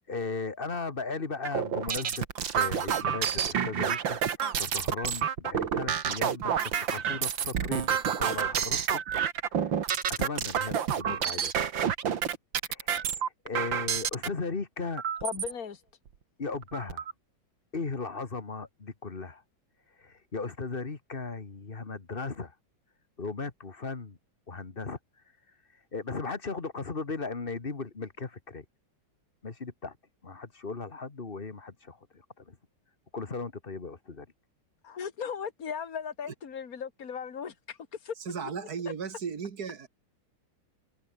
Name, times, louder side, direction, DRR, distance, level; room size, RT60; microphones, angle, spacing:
voice 1, 0.1-2.2 2.5-9.0 9.5-9.9 10.2-11.5 12.7-15.0 16.4-17.1 17.7-19.4 20.0-22.5 23.2-24.2 24.5-25.0 25.9-28.7 29.4-30.0 30.2-32.6 33.1-34.3, left 4 dB, 30° left, 1.8 m, -37 dB
sound 1, 1.4-14.3 15.0-15.5 16.1-16.2 16.5-17.1, right 8 dB, 80° right, 2.4 m, -29 dB
voice 2, 15.2-15.8 34.8-38.1 38.4-38.5, left 7 dB, 50° left, 2.4 m, -37 dB
voice 3, 38.3-39.9, right 6 dB, 55° right, 2.2 m, -35 dB
omnidirectional pair, 2.1 m